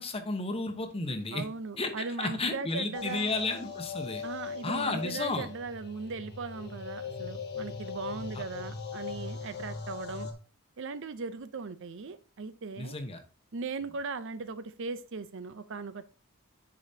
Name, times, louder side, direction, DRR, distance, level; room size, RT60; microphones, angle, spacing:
voice 1, 0.0-1.4 1.8-4.2 4.6-5.5 8.3-8.4 12.8-13.2, left 3 dB, 25° left, 5 dB, 1.0 m, -33 dB
voice 2, 1.3-3.3 4.2-10.3 10.8-13.0 13.5-16.1, right 4 dB, 60° right, 13 dB, 0.6 m, -38 dB
sound 1, 2.9-10.3, left 5 dB, 50° left, 1.4 m, -40 dB
9.9 x 5.0 x 2.8 m, 0.37 s
head